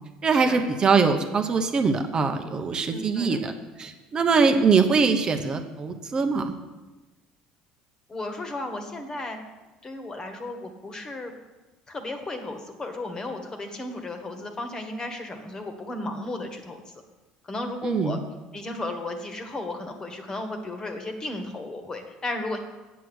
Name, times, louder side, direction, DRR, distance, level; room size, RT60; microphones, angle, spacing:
voice 1, 0.2-3.5 3.8-6.5 17.8-18.2, right 5 dB, 35° right, 6 dB, 1.0 m, -22 dB
voice 2, 2.9-3.6 4.5-4.6 8.1-9.4 9.8-11.3 11.9-16.8 17.5-18.2 18.5-22.6, left 2 dB, 25° left, 6 dB, 1.7 m, -34 dB
8.3 x 7.8 x 6.3 m, 1.2 s
supercardioid pair, 100°, 3 cm